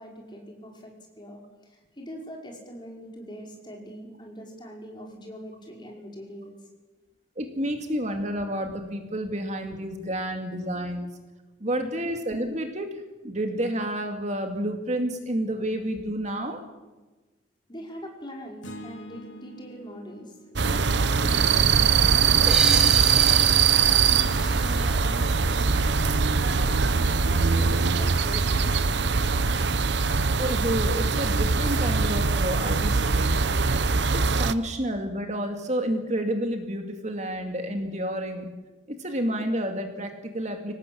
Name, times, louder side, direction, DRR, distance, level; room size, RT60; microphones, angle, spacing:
voice 1, 0.0-6.5 17.7-22.7 23.1-25.7 26.4-29.0, equal, 25° left, 0 dB, 5.3 m, -42 dB
voice 2, 7.4-11.1 11.6-12.9 13.2-16.6 30.4-33.4 34.1-38.5 38.9-40.7, right 1 dB, 35° right, 4 dB, 2.4 m, -30 dB
sound 1, 18.6-22.9, equal, 75° left, 2.6 m, -47 dB
sound 2, 20.6-34.5, right 5 dB, 60° right, 0.9 m, -22 dB
sound 3, 22.5-26.0, right 1 dB, 5° right, 1.2 m, -33 dB
24.5 x 18.5 x 8.7 m, 1.2 s
head